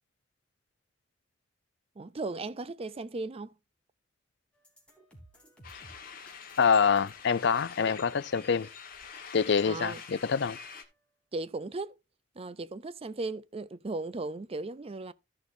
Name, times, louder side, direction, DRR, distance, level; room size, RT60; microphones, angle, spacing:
voice 1, 2.0-3.5 9.7-10.0 11.3-12.0 12.4-15.1, right 3 dB, 30° right, 0.5 m, -36 dB
sound 1, 4.5-11.0, right 1 dB, 5° left, 3.3 m, -59 dB
sound 2, 5.6-10.8, left 6 dB, 50° left, 1.5 m, -46 dB
voice 2, 6.6-8.7 9.3-10.6, left 6 dB, 65° left, 0.5 m, -26 dB
14.0 x 6.2 x 2.6 m
head